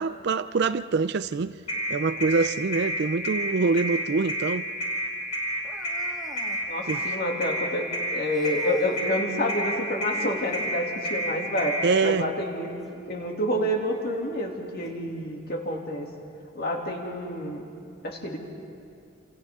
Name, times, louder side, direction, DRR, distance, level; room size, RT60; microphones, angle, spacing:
voice 1, 0.0-1.6 1.9-4.7 6.9-7.0 11.8-12.3, right 4 dB, 50° right, 0.4 m, -25 dB
sound 1, 1.7-11.9, equal, 30° left, 4.1 m, -29 dB
sound 2, 5.6-6.7 8.3-9.1 10.1-10.8 12.8-12.9 13.8-13.9 14.9-15.0, left 1 dB, ahead, 1.8 m, -44 dB
voice 2, 6.7-16.1 16.5-17.7 18.0-18.4, equal, 45° left, 2.7 m, -29 dB
28.5 x 28.5 x 3.7 m
head